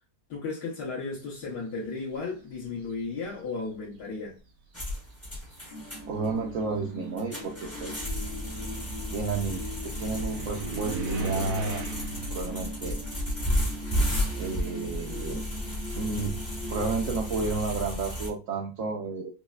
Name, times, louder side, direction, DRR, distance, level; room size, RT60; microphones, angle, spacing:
voice 1, 0.3-4.4, left 4 dB, 75° left, 1.6 m, -34 dB
sound 1, 2.5-3.1 4.0-4.1 4.7-14.6 14.9-17.5, right 1 dB, 85° right, 1.5 m, -39 dB
sound 2, 4.7-18.3, equal, 15° left, 0.6 m, -33 dB
sound 3, 5.7-17.6, equal, 50° left, 0.7 m, -41 dB
voice 2, 6.1-7.5 7.8-8.1 9.1-11.8 12.3-13.0 14.4-15.4 15.9-16.4 16.7-19.3, right 4 dB, 70° right, 0.8 m, -32 dB
5.3 x 2.1 x 2.3 m
omnidirectional pair, 1.8 m